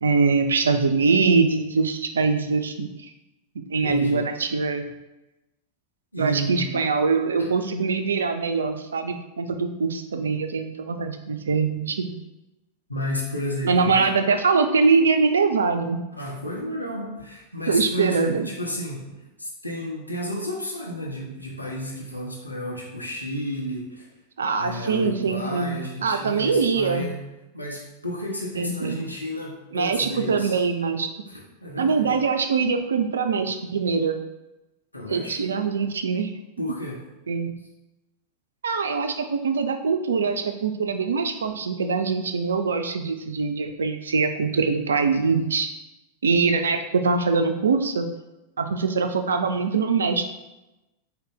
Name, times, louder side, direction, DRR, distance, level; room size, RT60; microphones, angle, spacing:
voice 1, 0.0-3.1 3.7-4.9 6.2-12.1 13.6-16.0 17.7-18.5 24.4-27.0 28.6-29.1 29.7-31.1 31.8-34.2 35.1-36.3 37.3-37.5 38.6-45.7 46.2-48.1 48.6-50.3, right 4 dB, 70° right, 7 dB, 0.3 m, -23 dB
voice 2, 3.8-4.2 6.1-6.7 7.4-7.5 12.9-14.1 16.1-19.0 19.4-24.1 24.5-27.2 27.5-30.6 31.3-32.1 34.9-35.4 36.6-37.0, equal, 85° left, -3 dB, 0.8 m, -32 dB
3.8 x 2.2 x 3.7 m, 0.99 s
figure-of-eight pair, 90°, 0 cm